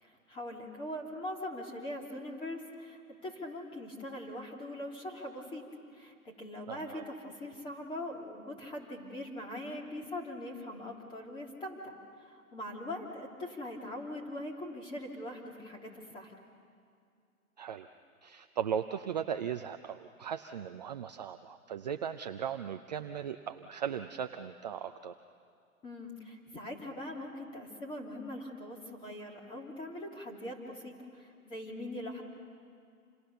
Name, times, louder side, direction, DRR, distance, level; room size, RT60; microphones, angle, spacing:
voice 1, 0.0-5.6 5.9-12.0 12.3-16.3 25.8-32.2, left 1 dB, 10° left, 0 dB, 3.2 m, -42 dB
voice 2, 6.7-7.0 17.6-17.9 18.2-25.1, right 8 dB, 30° right, 8 dB, 0.6 m, -37 dB
29.5 x 28.0 x 6.9 m, 2.4 s
figure-of-eight pair, 140°, 44 cm